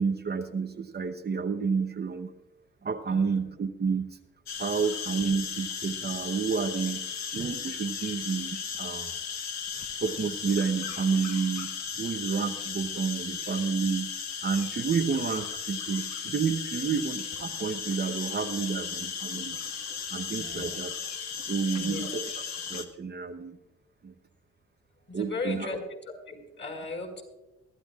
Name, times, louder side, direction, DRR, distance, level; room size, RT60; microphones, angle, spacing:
voice 1, 0.0-2.3 2.8-4.2 4.6-7.0 7.3-9.1 10.0-11.7 12.0-14.1 14.4-19.6 20.1-20.9 21.5-22.4 22.7-23.6 24.0-24.1 25.1-25.7, right 5 dB, 35° right, 6 dB, 0.8 m, -30 dB
voice 2, 3.1-3.4 20.3-20.7 21.7-22.1 25.1-25.8 26.3-27.2, left 3 dB, 35° left, 2 dB, 5.3 m, -37 dB
sound 1, 4.5-22.8, left 7 dB, 65° left, 1.5 m, -36 dB
22.0 x 13.5 x 2.4 m, 1.0 s
cardioid pair, 90°, 30 cm